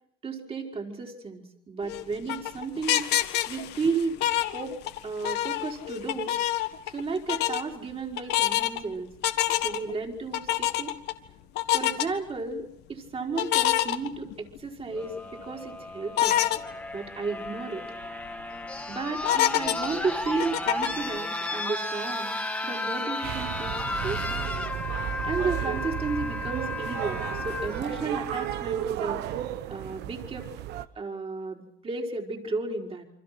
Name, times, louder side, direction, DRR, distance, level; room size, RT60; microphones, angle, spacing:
voice 1, 0.2-3.1 3.5-4.2 4.5-4.8 5.0-6.3 6.9-9.1 9.6-10.9 11.7-16.4 16.9-17.9 18.9-22.4 22.6-24.5 25.2-29.4 29.7-30.5 30.9-33.0, right 4 dB, 35° right, 2 dB, 4.7 m, -33 dB
sound 1, 1.8-5.0 5.2-7.0 7.3-7.6 8.2-8.8 9.2-9.9 10.3-11.1 11.6-12.1 13.4-14.6 15.0-15.1 16.2-16.6 17.1-17.2 17.5-17.6 18.0-18.4 19.2-21.1, left 13 dB, 85° left, 1.7 m, -26 dB
sound 2, 14.9-28.9 30.1-30.2, left 2 dB, 5° left, 2.1 m, -34 dB
sound 3, 23.2-30.9, right 12 dB, 85° right, 1.1 m, -33 dB
28.0 x 25.5 x 6.0 m, 0.67 s
cardioid pair, 110°, 17 cm